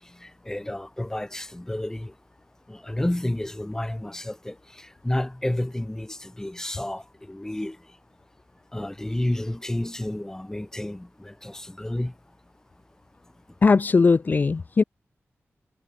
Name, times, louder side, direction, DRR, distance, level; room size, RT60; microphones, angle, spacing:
voice 1, 0.2-2.1 2.7-7.8 8.7-12.1, left 1 dB, 10° left, 3.3 m, -31 dB
voice 2, 13.6-14.8, left 4 dB, 40° left, 0.5 m, -19 dB
wide cardioid pair, 140°, 5 cm